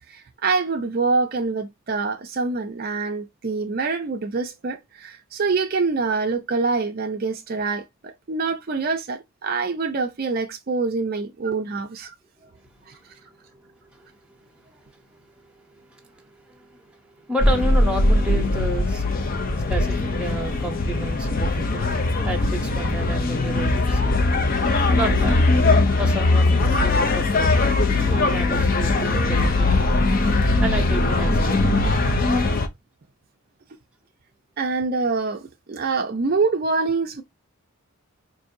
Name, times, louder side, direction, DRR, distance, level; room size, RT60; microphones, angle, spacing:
voice 1, 0.1-12.1 12.9-13.0 34.6-37.2, right 4 dB, 45° right, 0.4 m, -25 dB
voice 2, 12.4-19.0 19.6-24.2 24.9-25.4 26.0-27.5 28.0-29.9 30.6-31.6, right 1 dB, 5° right, 0.8 m, -32 dB
sound 1, 17.4-32.7, left 2 dB, 40° left, 0.5 m, -20 dB
4.6 x 2.6 x 2.5 m
head